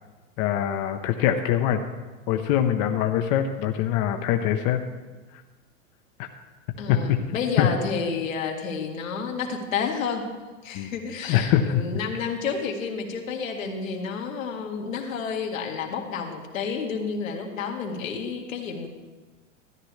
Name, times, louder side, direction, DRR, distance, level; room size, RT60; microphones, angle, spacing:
voice 1, 0.4-1.8 2.3-4.8 6.2-6.3 6.9-7.2 7.6-7.7 10.7-10.9 11.3-11.8, left 10 dB, 40° left, 5 dB, 0.7 m, -23 dB
voice 2, 6.8-10.3 10.6-18.9, left 5 dB, 85° left, 1 dB, 1.9 m, -30 dB
13.5 x 10.0 x 3.2 m, 1.3 s
hypercardioid pair, 120°, 40 cm